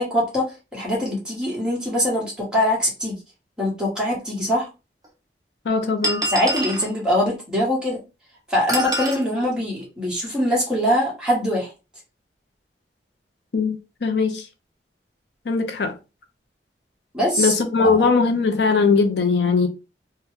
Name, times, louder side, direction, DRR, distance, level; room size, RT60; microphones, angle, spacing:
voice 1, 0.0-3.1 3.6-4.7 6.3-8.0 8.5-11.7 17.1-18.1, left 1 dB, 5° right, 1.2 m, -23 dB
sound 1, 4.0-4.1 5.0-5.1 6.0-6.9 8.7-9.2, right 1 dB, 20° right, 0.6 m, -25 dB
voice 2, 5.7-6.2 13.5-14.4 15.5-15.9 17.4-19.7, left 4 dB, 75° left, 0.6 m, -20 dB
2.8 x 2.2 x 3.5 m
head